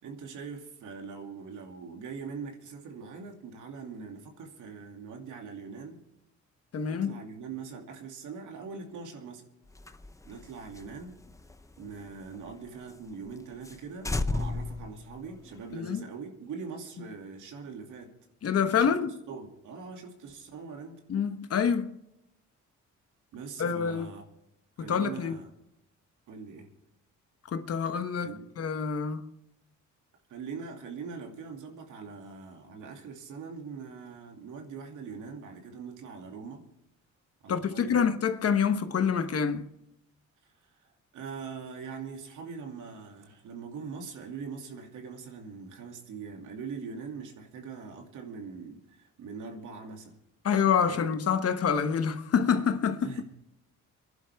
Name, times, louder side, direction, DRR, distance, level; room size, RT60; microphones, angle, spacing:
voice 1, 0.0-6.0 6.9-9.4 10.2-11.1 11.8-18.1 18.6-18.9 19.3-21.0 23.3-24.2 24.8-25.5 26.3-26.7 28.2-28.5 30.3-36.7 37.4-38.0 40.6-50.2 50.8-51.0 53.0-53.2, right 5 dB, 80° right, 2.6 m, -42 dB
voice 2, 6.7-7.1 15.7-16.0 18.4-19.1 21.1-21.9 23.6-24.1 24.8-25.4 27.5-29.3 37.5-39.7 50.4-53.1, left 7 dB, 50° left, 1.2 m, -27 dB
sound 1, 9.7-12.5 12.9-13.0 13.3-13.4 13.6-13.8 14.0-15.7, left 2 dB, 10° left, 0.7 m, -35 dB
26.5 x 11.0 x 3.5 m
cardioid pair, 90°, 30 cm